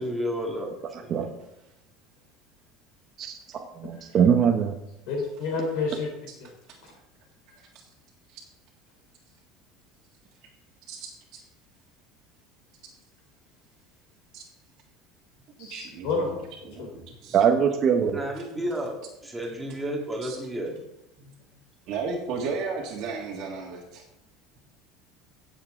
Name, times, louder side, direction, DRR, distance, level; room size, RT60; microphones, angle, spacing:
voice 1, 0.0-1.3 17.3-17.4 18.1-20.8 21.2-21.3, equal, 5° right, -1 dB, 2.0 m, -32 dB
voice 2, 1.1-1.4 7.7-7.8 8.3-8.4 10.9-11.4 14.3-14.4 15.6-16.3 16.6-17.4 20.2-20.4 21.9-24.0, right 4 dB, 50° right, -3 dB, 1.8 m, -35 dB
voice 3, 3.8-4.7 17.3-18.2, right 7 dB, 30° right, 2 dB, 0.9 m, -21 dB
voice 4, 5.1-6.1 6.4-6.5 15.6-16.4 16.8-16.9, left 4 dB, 65° left, 0 dB, 3.4 m, -29 dB
16.5 x 7.2 x 3.7 m, 0.85 s
cardioid pair, 165°, 0 cm